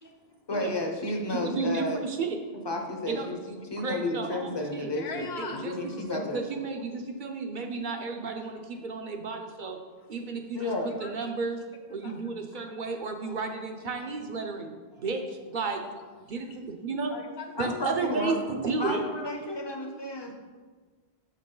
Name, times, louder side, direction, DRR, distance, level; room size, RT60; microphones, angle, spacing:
voice 1, 0.5-2.0 2.6-3.4 3.7-5.3 5.6-6.4 8.4-8.5 10.5-11.0 12.5-12.6 13.3-13.4 14.0-14.1 14.9-15.1 17.6-18.4 18.8-20.4, left 1 dB, 30° left, 3 dB, 0.7 m, -32 dB
voice 2, 1.3-2.4 3.1-4.9 5.4-5.7 6.1-9.8 10.1-10.7 11.0-11.6 11.9-14.7 15.0-15.8 16.3-16.4 16.8-17.1 17.6-19.0, right 4 dB, 55° right, 4 dB, 0.8 m, -32 dB
voice 3, 4.8-5.7 7.6-7.7 8.7-8.9 10.0-10.1 10.9-11.6 11.9-12.2 15.5-16.5 17.1-18.8 19.1-19.2, left 4 dB, 90° left, 4 dB, 1.1 m, -44 dB
6.5 x 5.9 x 3.8 m, 1.4 s
omnidirectional pair, 1.0 m